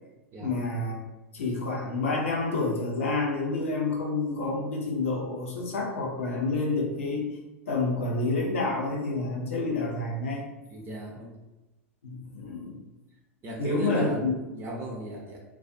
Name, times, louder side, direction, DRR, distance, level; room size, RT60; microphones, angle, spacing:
voice 1, 0.4-1.0 1.3-7.3 7.7-10.4 12.0-12.8 13.6-14.3, left 3 dB, 75° left, -2 dB, 0.7 m, -28 dB
voice 2, 10.7-11.3 13.4-15.4, right 1 dB, 30° right, -1 dB, 0.6 m, -36 dB
2.3 x 2.2 x 2.5 m, 1.0 s
figure-of-eight pair, 90°, 7 cm